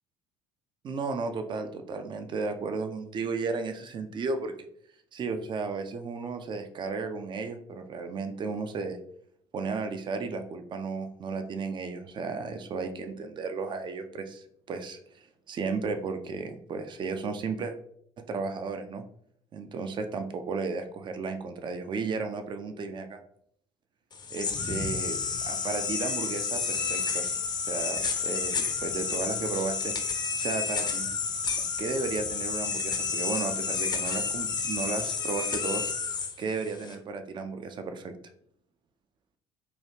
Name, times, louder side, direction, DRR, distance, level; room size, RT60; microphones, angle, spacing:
voice 1, 0.8-4.5 5.1-9.0 9.5-17.7 18.2-19.0 19.5-23.2 24.3-25.2 25.5-27.4 27.7-29.9 30.4-31.1 31.8-35.9 36.4-38.2, right 4 dB, 35° right, 8 dB, 0.4 m, -34 dB
sound 1, 24.1-37.0, left 5 dB, 30° left, 0.5 m, -30 dB
3.0 x 2.3 x 2.8 m, 0.67 s
figure-of-eight pair, 55°, 14 cm